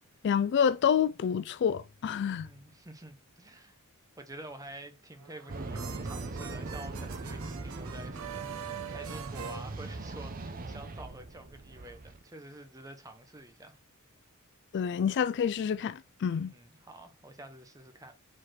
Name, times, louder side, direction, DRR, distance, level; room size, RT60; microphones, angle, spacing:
voice 1, 0.2-2.5 14.7-16.5, left 7 dB, 55° left, 0.3 m, -28 dB
voice 2, 2.3-3.8 4.2-13.8 16.4-18.1, right 1 dB, 15° right, 0.9 m, -48 dB
sound 1, 5.2-10.5, right 8 dB, 70° right, 0.9 m, -44 dB
sound 2, 5.5-12.2, right 2 dB, 40° right, 0.7 m, -40 dB
5.0 x 4.2 x 6.0 m
head